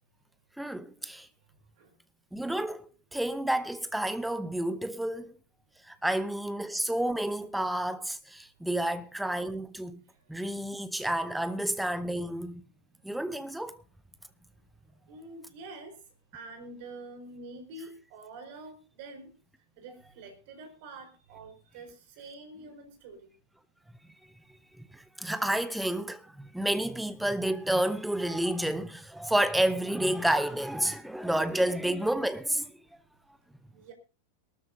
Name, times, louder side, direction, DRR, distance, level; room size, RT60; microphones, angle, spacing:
voice 1, 0.6-1.3 2.3-5.3 5.9-10.0 10.3-12.6 13.0-13.8 24.8-32.8, right 1 dB, 5° right, 0.8 m, -30 dB
voice 2, 10.1-10.5 15.1-15.9 16.3-19.3 19.8-23.3 33.7-33.9, right 2 dB, 50° right, 4.2 m, -47 dB
22.5 x 13.0 x 2.7 m
figure-of-eight pair, 90°, 0 cm